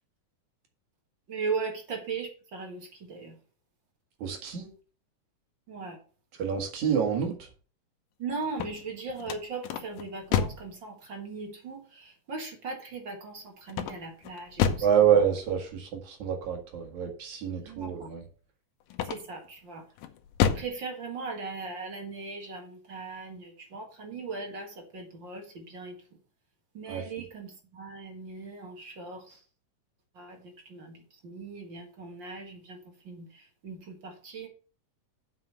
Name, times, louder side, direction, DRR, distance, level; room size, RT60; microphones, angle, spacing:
voice 1, 1.3-3.4 5.7-6.0 8.2-14.9 15.1-15.2 17.6-18.1 19.0-19.9 20.5-26.0 26.7-29.4 30.1-34.5, right 4 dB, 40° right, 3 dB, 2.0 m, -39 dB
voice 2, 4.2-4.7 6.4-7.4 14.8-18.2 26.9-27.0, right 8 dB, 65° right, 3 dB, 3.2 m, -27 dB
sound 1, 8.4-10.7 13.7-15.0 18.9-19.5 20.0-20.8, left 8 dB, 80° left, 2.4 m, -29 dB
7.8 x 5.7 x 6.9 m, 0.38 s
omnidirectional pair, 3.7 m